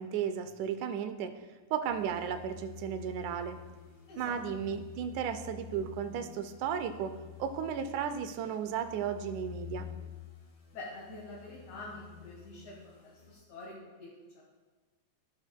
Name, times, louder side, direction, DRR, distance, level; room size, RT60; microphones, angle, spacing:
voice 1, 0.0-1.3 1.7-3.6 4.2-7.1 7.4-9.9, right 8 dB, 85° right, 8 dB, 2.1 m, -34 dB
sound 1, 1.8-13.3, left 10 dB, 45° left, 2.0 m, -49 dB
voice 2, 10.7-14.1, left 2 dB, 70° left, -6 dB, 2.8 m, -46 dB
14.5 x 6.2 x 2.2 m, 1.3 s
omnidirectional pair, 3.4 m